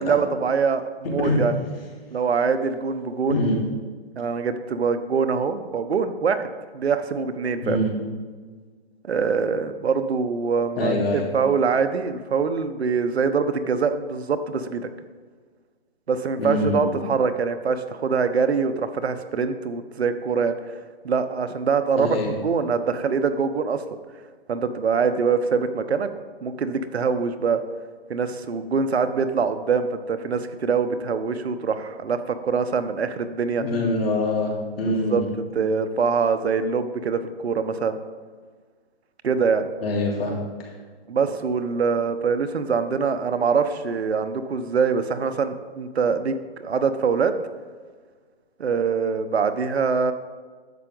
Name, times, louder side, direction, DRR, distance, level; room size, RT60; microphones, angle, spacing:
voice 1, 0.0-1.5 2.1-3.4 4.2-6.4 6.7-7.8 9.0-14.9 16.1-20.6 21.0-23.8 24.5-26.1 26.4-27.6 28.1-33.6 34.9-35.2 35.5-38.0 39.2-39.7 41.1-47.3 48.6-50.1, right 5 dB, 90° right, 10 dB, 1.0 m, -24 dB
voice 2, 7.6-7.9 10.8-11.3 16.4-16.9 22.0-22.3 33.6-35.3 39.8-40.7, left 2 dB, 65° left, -2 dB, 3.2 m, -24 dB
11.0 x 7.7 x 3.9 m, 1.5 s
hypercardioid pair, 150°, 31 cm